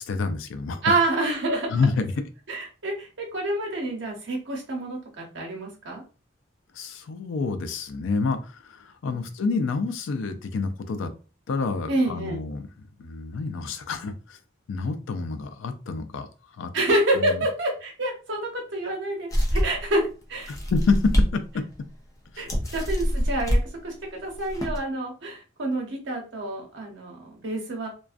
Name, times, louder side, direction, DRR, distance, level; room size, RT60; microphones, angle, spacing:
voice 1, 0.0-0.8 1.7-2.1 6.7-11.1 11.5-12.7 13.0-14.4 14.7-16.3 16.6-16.7 17.1-17.4 20.5-21.6 22.3-22.5, left 4 dB, 80° left, 8 dB, 0.4 m, -28 dB
voice 2, 0.8-1.7 2.5-6.0 9.1-9.2 11.9-12.4 16.7-20.5 22.4-27.9, right 2 dB, 70° right, 0 dB, 0.8 m, -28 dB
sound 1, 19.3-19.9 20.4-21.3 21.7-21.8 22.5-23.6 24.3-24.8, equal, 15° left, 0.4 m, -24 dB
2.4 x 2.2 x 2.4 m, 0.34 s
head